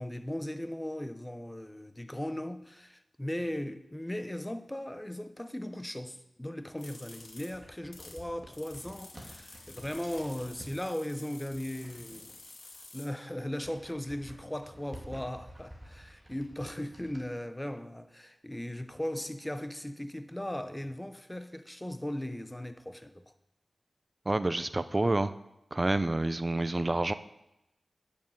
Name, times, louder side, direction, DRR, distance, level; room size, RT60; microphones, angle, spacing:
voice 1, 0.0-12.4 12.9-23.3, left 1 dB, 10° left, 0.7 m, -38 dB
sound 1, 6.8-8.2 8.5-13.1, left 2 dB, 65° left, 2.1 m, -51 dB
sound 2, 7.0-10.8 11.5-12.8 13.1-17.2, equal, 10° right, 2.6 m, -51 dB
voice 2, 24.3-25.3 25.7-27.1, right 2 dB, 25° right, 0.6 m, -28 dB
8.8 x 7.0 x 7.9 m
wide cardioid pair, 100°, 0 cm